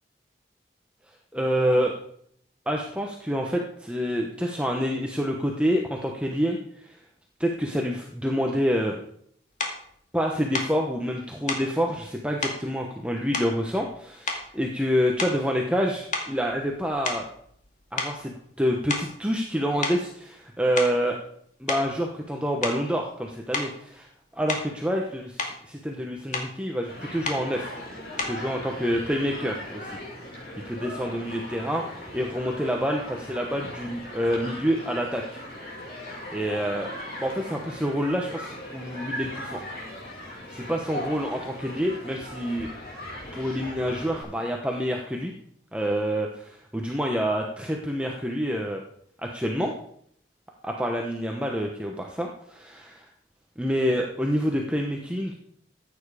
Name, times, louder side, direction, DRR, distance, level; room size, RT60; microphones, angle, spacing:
voice 1, 1.3-2.0 2.7-7.0 7.4-9.0 10.1-17.3 17.9-21.2 21.6-27.7 28.2-30.0 30.7-35.4 36.3-36.9 37.2-39.6 40.5-42.7 43.3-45.3 45.7-48.8 49.2-49.7 50.6-53.1 53.6-55.3, equal, 5° right, 1 dB, 1.0 m, -27 dB
sound 1, 9.6-9.8 10.5-10.8 11.5-11.7 12.4-12.6 13.3-13.9 14.3-14.6 15.1-15.5 16.1-17.7 18.0-18.2 18.9-19.2 19.8-20.0 20.6-21.0 21.7-21.9 22.6-22.9 23.5-23.8 24.5-24.8 25.2-25.6 26.3-26.5 27.2-27.5 28.2-28.5, left 3 dB, 45° left, 2.2 m, -31 dB
Human group actions, 26.9-44.2, left 1 dB, 60° left, 6.6 m, -39 dB
14.5 x 9.0 x 4.9 m, 0.67 s
head